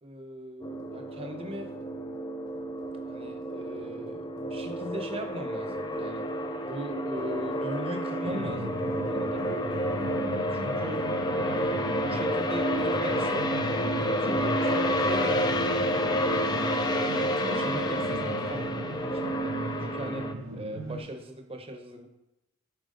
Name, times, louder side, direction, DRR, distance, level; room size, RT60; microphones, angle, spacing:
voice 1, 0.0-1.7 3.1-6.3 6.6-9.5 10.0-11.0 11.4-13.5 13.9-16.8 17.1-18.7 19.1-22.1, equal, 25° right, 5 dB, 0.8 m, -39 dB
sound 1, 0.6-20.3, equal, 20° left, 0.4 m, -30 dB
sound 2, 8.2-21.0, right 1 dB, 85° right, 2.0 m, -37 dB
10.5 x 4.5 x 3.9 m, 0.90 s
head